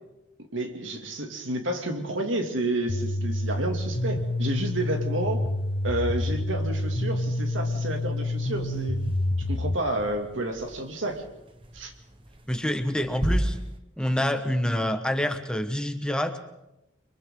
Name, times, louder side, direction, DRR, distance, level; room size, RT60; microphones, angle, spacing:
voice 1, 0.5-5.4 5.8-9.0 9.5-11.2 11.7-11.9, right 1 dB, 90° right, 4 dB, 2.6 m, -30 dB
sound 1, 2.9-9.7, left 1 dB, 65° left, 1.3 m, -28 dB
sound 2, 3.3-13.8, right 1 dB, 30° right, 1.3 m, -37 dB
voice 2, 12.5-13.6 14.0-16.4, left 1 dB, 5° left, 7 dB, 1.3 m, -27 dB
30.0 x 23.0 x 3.9 m, 0.91 s
head